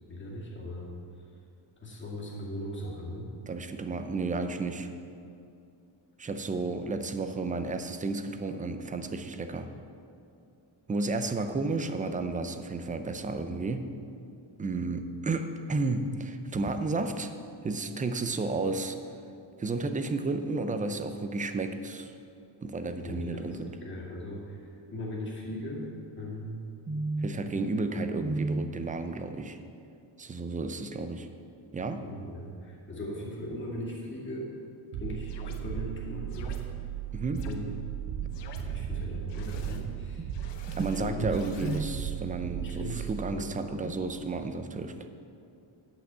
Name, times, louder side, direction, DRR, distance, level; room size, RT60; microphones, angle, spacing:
voice 1, 0.1-0.9 1.2-1.3 1.8-3.3 23.0-25.9 26.2-26.6 32.0-34.5 35.0-36.6 37.4-37.8 38.6-40.3 41.0-41.4 42.6-43.6, left 1 dB, 25° left, -5 dB, 2.3 m, -38 dB
voice 2, 3.5-4.9 6.2-9.7 10.9-13.9 14.6-17.3 17.6-19.0 19.6-22.1 22.6-23.7 26.9-29.6 30.2-31.3 31.7-32.1 37.1-37.5 40.7-44.9, right 3 dB, 15° right, 8 dB, 0.4 m, -32 dB
sound 1, 34.9-44.0, right 10 dB, 80° right, 0.7 m, -36 dB
sound 2, 35.3-35.6 36.3-36.6 37.3-37.5 38.3-38.6 39.3-39.8 40.3-41.8, left 6 dB, 60° left, 1.0 m, -49 dB
8.5 x 5.9 x 7.5 m, 2.5 s
cardioid pair, 130°, 48 cm